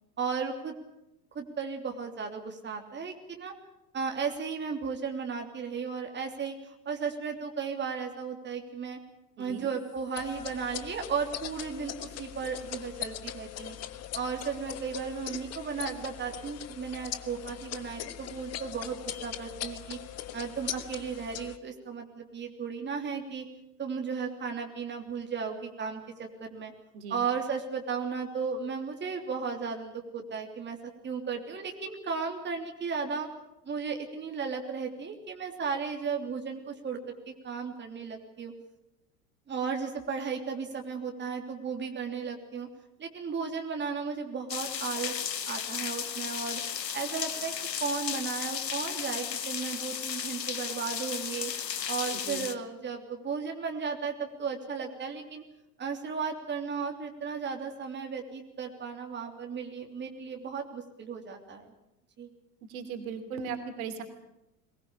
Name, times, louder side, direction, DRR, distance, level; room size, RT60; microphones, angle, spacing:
voice 1, 0.2-0.7 1.3-3.5 3.9-9.0 9.4-13.7 14.1-20.0 20.3-23.4 23.8-26.7 27.1-30.8 31.0-33.3 33.6-37.0 37.3-38.5 39.5-42.7 43.0-45.1 45.5-46.6 46.9-47.5 47.8-51.5 51.9-55.4 55.8-61.6 62.2-62.3, right 5 dB, 20° right, 3 dB, 3.2 m, -35 dB
sound 1, 10.2-21.6, left 11 dB, 30° left, 1.3 m, -40 dB
sound 2, 44.5-52.5, left 8 dB, 80° left, 1.2 m, -34 dB
voice 2, 62.7-64.0, right 6 dB, 55° right, 7 dB, 3.0 m, -37 dB
22.0 x 20.0 x 8.5 m, 0.88 s
figure-of-eight pair, 80°, 50 cm